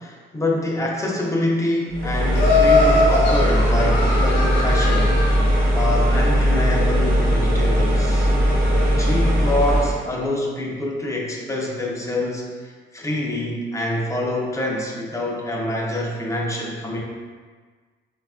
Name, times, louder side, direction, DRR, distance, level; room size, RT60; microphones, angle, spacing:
voice 1, 0.0-5.2 5.7-8.3 8.8-17.0, left 1 dB, 15° left, -2 dB, 0.5 m, -26 dB
sound 1, 1.9-10.0, equal, 45° right, 0.8 m, -19 dB
Laughter, 2.3-5.6, left 3 dB, 65° left, 0.7 m, -21 dB
3.3 x 2.3 x 2.4 m, 1.5 s
cardioid pair, 90°, 20 cm